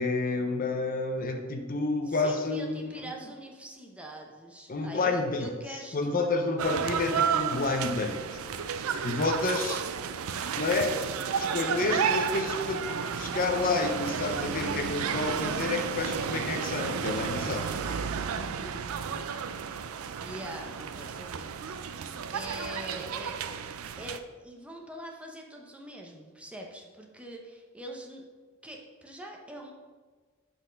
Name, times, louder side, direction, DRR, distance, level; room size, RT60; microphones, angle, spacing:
voice 1, 0.0-2.9 4.7-5.5 5.9-8.2 9.0-9.8 10.5-11.0 11.3-17.8, left 3 dB, 40° left, 4 dB, 0.6 m, -29 dB
voice 2, 2.1-6.2 18.3-19.6 20.2-23.6 24.0-28.3 28.6-29.7, right 1 dB, 5° right, 0 dB, 0.8 m, -44 dB
sound 1, 6.6-24.2, right 7 dB, 90° right, 0.4 m, -32 dB
7.9 x 4.2 x 5.1 m, 1.5 s
head